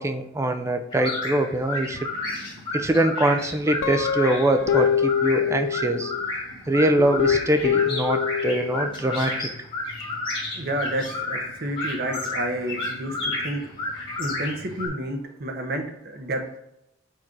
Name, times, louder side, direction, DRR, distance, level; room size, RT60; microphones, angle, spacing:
voice 1, 0.0-2.0 2.7-6.1 6.7-9.5, right 1 dB, 15° right, 6 dB, 0.4 m, -23 dB
sound 1, 0.9-14.9, left 2 dB, 25° left, 2.3 m, -32 dB
Guitar, 3.8-6.3 7.0-8.9, left 7 dB, 75° left, 0.4 m, -25 dB
voice 2, 10.5-13.7 14.2-16.4, right 1 dB, 50° right, 4 dB, 0.9 m, -30 dB
4.7 x 4.3 x 4.7 m, 0.82 s
head